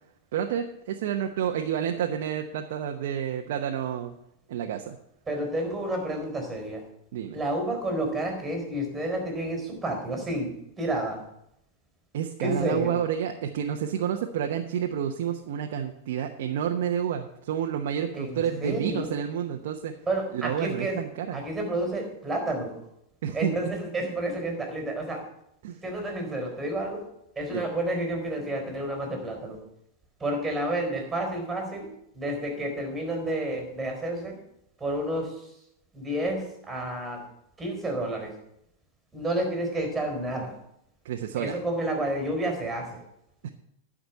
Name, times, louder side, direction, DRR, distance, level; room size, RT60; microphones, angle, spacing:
voice 1, 0.3-4.1 4.5-5.0 7.1-7.4 12.1-19.9 20.3-21.4 23.2-23.5 25.6-25.8 27.5-27.7 41.0-41.6 43.4-43.5, right 9 dB, 70° right, 3 dB, 1.0 m, -29 dB
voice 2, 5.3-6.8 7.3-11.2 12.4-12.9 18.1-19.1 20.0-21.0 21.3-22.7 23.3-25.2 25.8-27.0 27.4-29.6 30.2-31.9 32.1-34.3 34.8-35.5 35.9-37.2 37.6-38.3 39.1-40.5 41.3-43.0, right 1 dB, 10° right, 2 dB, 4.3 m, -30 dB
11.5 x 5.1 x 8.2 m, 0.77 s
hypercardioid pair, 125°, 0 cm